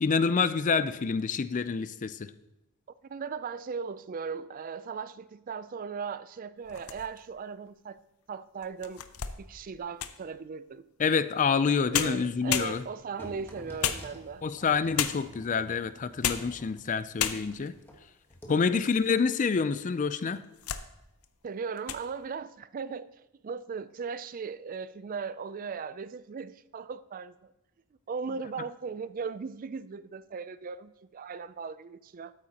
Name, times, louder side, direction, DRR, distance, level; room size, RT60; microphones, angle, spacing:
voice 1, 0.0-2.2 11.0-12.8 14.4-17.7 18.5-20.4, left 5 dB, 35° left, 0.4 m, -27 dB
voice 2, 3.0-8.0 8.3-9.0 9.4-10.8 11.9-14.4 18.5-18.8 21.4-23.1 23.4-27.5 28.1-32.3, right 5 dB, 40° right, 0.3 m, -38 dB
sound 1, 6.6-7.4 8.0-8.1 8.6-10.3 11.6-11.7 11.9-13.1 13.8-14.5 15.0-15.4 16.0-16.6 16.9-17.0 17.2-17.7 18.3-19.1 19.4-19.5 20.2-20.9 21.2-21.5 21.8-22.1, left 9 dB, 90° left, 0.6 m, -33 dB
sound 2, 13.2-18.0 18.3-18.5, equal, 10° left, 1.4 m, -49 dB
13.0 x 8.3 x 2.9 m
head